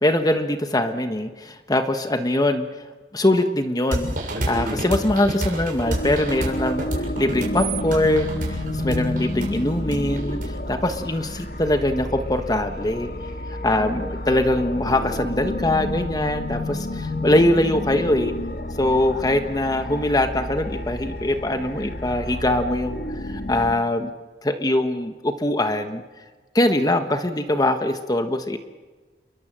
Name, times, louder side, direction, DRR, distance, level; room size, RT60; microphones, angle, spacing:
voice 1, 0.0-2.7 3.1-13.1 13.6-18.3 18.8-24.1 24.4-26.0 26.5-28.6, left 1 dB, 20° left, 7 dB, 1.3 m, -22 dB
sound 1, 3.9-11.5, right 1 dB, 50° right, 7.0 m, -29 dB
sound 2, 5.8-23.7, left 1 dB, 55° left, 2.0 m, -30 dB
28.5 x 22.5 x 7.6 m, 1.3 s
head